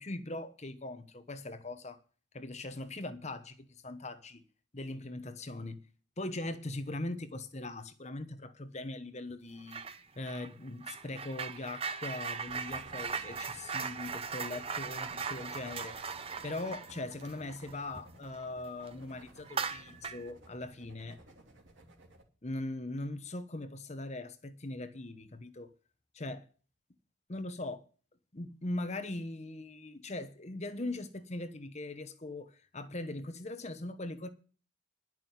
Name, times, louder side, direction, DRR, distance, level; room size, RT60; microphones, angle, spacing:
voice 1, 0.0-2.0 2.3-4.4 4.7-5.8 6.2-16.0 16.4-21.2 22.4-25.7 26.1-26.4 27.3-27.9 28.3-34.3, left 2 dB, 35° left, 1.0 m, -40 dB
sound 1, 9.7-10.0 10.3-18.4 18.8-18.9 19.5-20.3, right 5 dB, 30° right, 0.7 m, -39 dB
sound 2, 12.5-22.2, right 1 dB, 65° right, 2.7 m, -57 dB
11.0 x 6.1 x 9.1 m
head